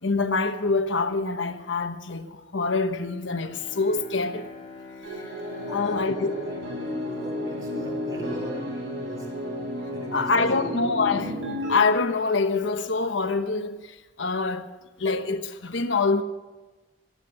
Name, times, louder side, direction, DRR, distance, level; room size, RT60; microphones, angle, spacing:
voice 1, 0.0-4.5 5.1-5.2 5.7-6.3 10.1-14.7 15.0-16.2, left 4 dB, 85° left, 1.1 m, -25 dB
Bowed string instrument, 3.2-8.5, left 3 dB, 45° left, 3.3 m, -44 dB
sound 1, 5.0-13.5, left 1 dB, 80° right, 7.2 m, -33 dB
voice 2, 5.5-9.3 9.9-10.7, right 1 dB, 20° right, 2.1 m, -41 dB
13.5 x 12.5 x 7.9 m
head